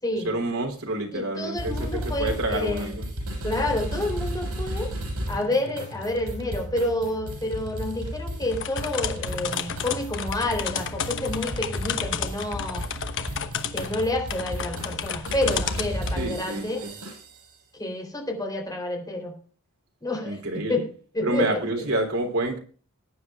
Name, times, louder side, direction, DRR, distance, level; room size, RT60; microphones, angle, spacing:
voice 1, 0.2-3.1 16.1-16.9 20.2-20.8 21.2-22.6, right 1 dB, 70° right, 2 dB, 3.4 m, -28 dB
voice 2, 1.1-2.9 3.4-4.9 5.3-12.8 13.7-16.9 17.8-19.3 20.0-20.9 21.1-21.6, left 1 dB, 15° left, 3 dB, 3.5 m, -29 dB
sound 1, 1.6-17.5, equal, 85° right, 7.2 m, -34 dB
sound 2, 8.5-16.2, left 7 dB, 60° left, 1.1 m, -32 dB
20.5 x 9.7 x 2.4 m, 0.41 s
head